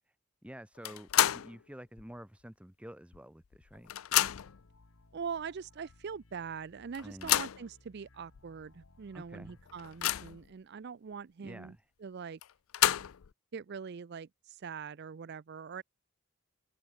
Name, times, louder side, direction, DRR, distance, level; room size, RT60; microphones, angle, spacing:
voice 1, 0.4-3.9 7.0-7.4 9.1-9.6 11.4-11.8, equal, 5° right, 1.2 m, -49 dB
sound 1, 0.8-1.6 2.0-2.1 3.1-3.2 3.5-4.6 5.4-5.5 5.9-6.0 6.9-7.7 8.4-8.5 8.8-8.9 9.4-10.5 12.4-13.3, left 12 dB, 90° left, 0.5 m, -30 dB
sound 2, 4.1-10.1, left 2 dB, 70° left, 1.6 m, -62 dB
voice 2, 5.1-12.4 13.5-15.8, right 6 dB, 55° right, 0.4 m, -43 dB
head